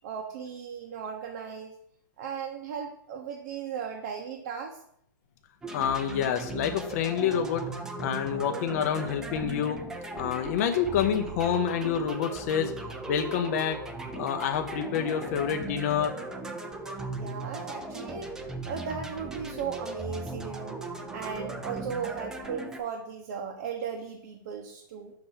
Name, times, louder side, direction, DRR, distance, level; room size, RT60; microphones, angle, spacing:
voice 1, 0.0-1.7 2.2-4.8 17.2-18.3 18.6-20.8 21.1-25.1, right 7 dB, 50° right, 2 dB, 0.8 m, -36 dB
sound 1, 5.6-22.8, right 2 dB, 5° right, 0.4 m, -38 dB
voice 2, 5.7-9.8 10.1-12.7 13.1-13.8 14.2-16.1, left 8 dB, 45° left, 6 dB, 0.6 m, -28 dB
5.8 x 3.3 x 5.6 m, 0.70 s
hypercardioid pair, 150°, 11 cm